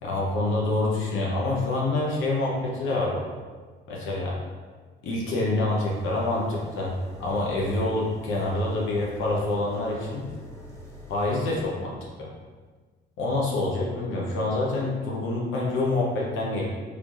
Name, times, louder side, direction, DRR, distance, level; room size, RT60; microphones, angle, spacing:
voice 1, 0.0-3.2 3.9-4.4 5.0-10.3 11.1-12.3 13.2-16.7, left 2 dB, 85° left, -3 dB, 0.8 m, -26 dB
sound 1, 5.7-11.6, left 1 dB, 15° left, 0.8 m, -44 dB
3.3 x 3.2 x 2.5 m, 1.4 s
cardioid pair, 90°, 20 cm